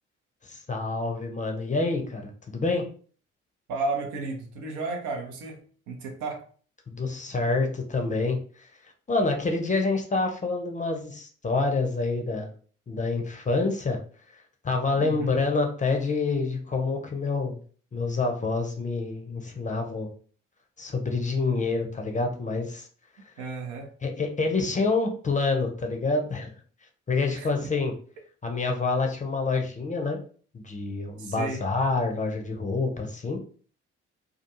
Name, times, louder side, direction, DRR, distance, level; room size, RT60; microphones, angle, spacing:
voice 1, 0.4-2.9 6.9-8.7 9.1-12.5 12.9-14.0 14.6-17.6 17.9-20.1 20.8-22.9 24.0-26.5 27.1-27.9 28.4-30.2 30.5-33.4, left 3 dB, 20° left, 3 dB, 0.6 m, -27 dB
voice 2, 3.7-6.4 15.0-15.4 23.4-23.9 27.3-27.7 31.2-31.6, right 3 dB, 60° right, 3 dB, 0.7 m, -33 dB
2.3 x 2.3 x 2.9 m, 0.43 s
figure-of-eight pair, 40°, 34 cm